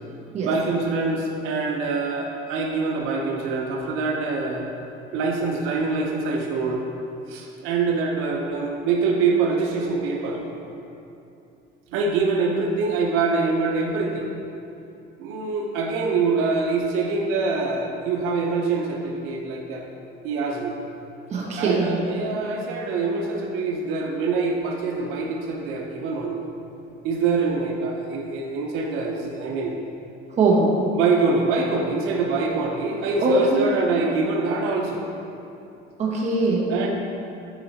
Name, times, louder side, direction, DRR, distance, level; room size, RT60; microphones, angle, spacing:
voice 1, 0.4-4.7 5.1-6.8 7.3-10.7 11.9-14.3 15.2-19.9 20.2-20.7 21.3-26.5 27.0-29.8 30.9-35.1 36.7-36.9, right 4 dB, 85° right, 0 dB, 0.9 m, -25 dB
voice 2, 21.3-22.0 30.4-30.7 33.2-33.4 36.0-36.7, right 3 dB, 30° right, -4 dB, 1.3 m, -21 dB
9.1 x 4.8 x 4.1 m, 2.8 s
cardioid pair, 160°, 21 cm